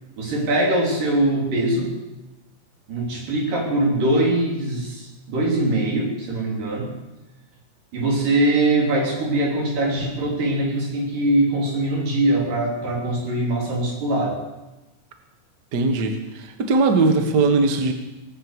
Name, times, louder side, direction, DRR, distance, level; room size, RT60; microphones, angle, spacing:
voice 1, 0.2-2.0 2.9-7.0 7.9-14.4, right 1 dB, 60° right, 0 dB, 4.6 m, -22 dB
voice 2, 15.7-17.9, right 3 dB, 85° right, 6 dB, 0.9 m, -20 dB
18.5 x 9.3 x 8.0 m, 1.0 s
omnidirectional pair, 4.6 m